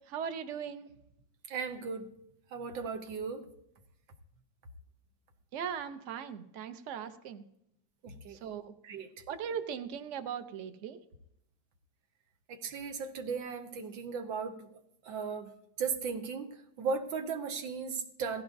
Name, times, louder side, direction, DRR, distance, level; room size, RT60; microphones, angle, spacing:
voice 1, 0.1-0.9 5.5-7.5 8.3-8.7 9.3-11.0, right 8 dB, 55° right, 9 dB, 0.9 m, -39 dB
voice 2, 1.5-2.1 2.5-3.5 8.0-8.4 8.8-9.2 12.5-15.5 15.8-18.4, right 5 dB, 85° right, 5 dB, 1.8 m, -37 dB
17.0 x 14.5 x 2.6 m, 0.76 s
omnidirectional pair, 2.1 m